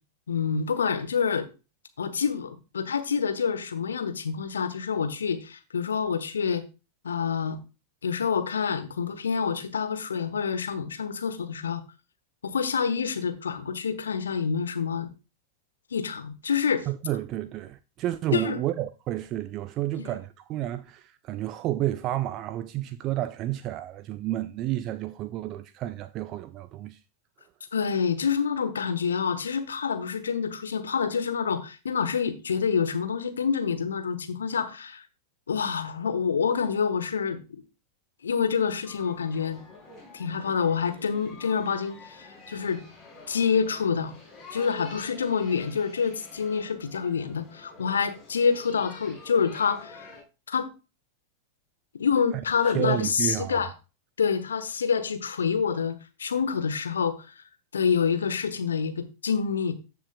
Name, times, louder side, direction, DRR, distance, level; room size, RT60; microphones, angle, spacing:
voice 1, 0.3-1.5 2.0-6.6 7.0-7.6 8.0-11.8 12.4-15.1 15.9-16.9 18.3-18.6 20.0-20.1 27.7-35.0 35.5-37.6 38.2-39.6 40.1-42.8 43.3-44.1 44.5-50.1 50.5-50.7 51.9-53.7 54.2-57.3 57.7-59.7, left 6 dB, 70° left, 1.2 m, -27 dB
voice 2, 16.9-27.0 52.7-53.7, right 14 dB, 35° right, 0.5 m, -31 dB
sound 1, 38.8-50.2, left 3 dB, 30° left, 4.6 m, -48 dB
14.0 x 7.0 x 2.3 m
figure-of-eight pair, 90°, 0 cm